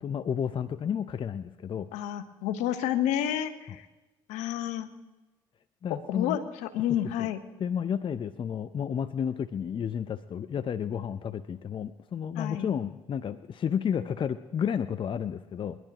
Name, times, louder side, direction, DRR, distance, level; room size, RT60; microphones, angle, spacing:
voice 1, 0.0-1.9 5.8-6.4 7.2-7.3 7.6-15.8, left 8 dB, 40° left, 12 dB, 0.6 m, -31 dB
voice 2, 1.9-3.8 4.3-4.9 5.9-7.4 12.4-12.7, left 11 dB, 75° left, 10 dB, 1.2 m, -30 dB
30.0 x 11.0 x 3.0 m, 1.1 s
hypercardioid pair, 60°, 13 cm